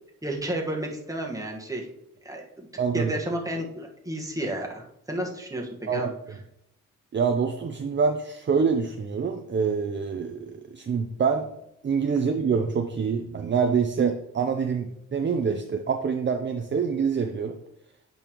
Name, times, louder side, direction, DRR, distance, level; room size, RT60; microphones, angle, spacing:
voice 1, 0.2-1.9 2.2-2.7 2.9-6.1, right 1 dB, 10° right, 0 dB, 1.5 m, -31 dB
voice 2, 2.8-3.1 5.9-6.0 7.1-11.5 11.8-17.6, right 6 dB, 35° right, 5 dB, 0.6 m, -26 dB
8.4 x 5.4 x 3.0 m, 0.77 s
cardioid pair, 90°, 31 cm